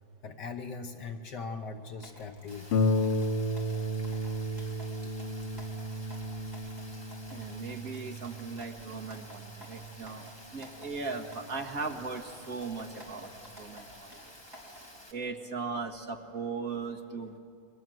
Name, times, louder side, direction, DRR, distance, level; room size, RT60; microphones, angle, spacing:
voice 1, 0.2-2.9, left 4 dB, 55° left, 6 dB, 1.7 m, -40 dB
sound 1, 2.0-15.0, equal, 10° right, 4.2 m, -53 dB
Rain, 2.5-15.1, left 1 dB, 10° left, 2.0 m, -53 dB
Harp, 2.7-11.9 12.7-12.8 13.3-13.4, left 1 dB, 85° left, 2.0 m, -33 dB
voice 2, 7.3-10.3 10.5-13.3 13.5-14.1 15.1-17.4, right 4 dB, 45° right, 1 dB, 2.0 m, -38 dB
29.5 x 23.0 x 7.8 m, 2.5 s
omnidirectional pair, 2.3 m